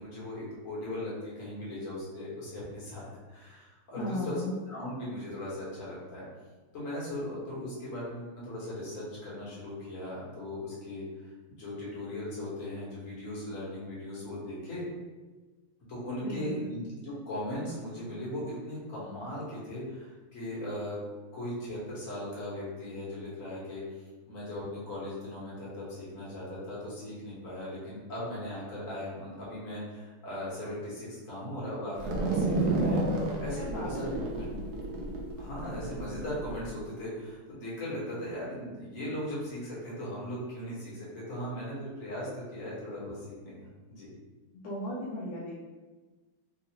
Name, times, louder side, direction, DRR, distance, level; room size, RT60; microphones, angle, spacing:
voice 1, 0.0-4.4 4.7-6.2 6.7-11.0 11.5-14.8 15.9-21.0 21.3-34.5 35.4-43.6 43.9-44.1, left 1 dB, 45° left, -7 dB, 1.4 m, -38 dB
voice 2, 4.0-4.5 16.2-16.6 33.5-34.3 44.5-45.6, left 1 dB, 70° left, -7 dB, 1.0 m, -36 dB
sound 1, 32.0-36.6, right 2 dB, 80° right, 0.8 m, -30 dB
3.6 x 2.7 x 2.8 m, 1.3 s
omnidirectional pair, 2.4 m